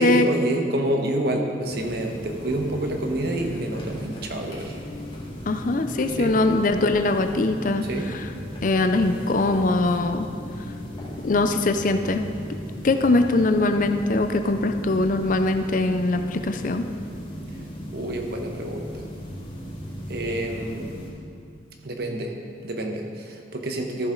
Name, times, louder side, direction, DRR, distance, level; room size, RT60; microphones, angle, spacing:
voice 1, 0.0-4.8 6.1-6.3 7.8-8.1 17.9-19.0 20.1-20.9 21.8-22.3 22.6-24.1, right 1 dB, 60° right, 3 dB, 1.1 m, -28 dB
sound 1, 1.7-21.1, equal, 30° left, 2.0 m, -37 dB
voice 2, 5.5-7.9 8.1-8.2 8.6-10.3 11.2-12.3 12.8-16.9, left 2 dB, 45° left, 8 dB, 0.5 m, -22 dB
13.5 x 7.1 x 3.9 m, 2.4 s
head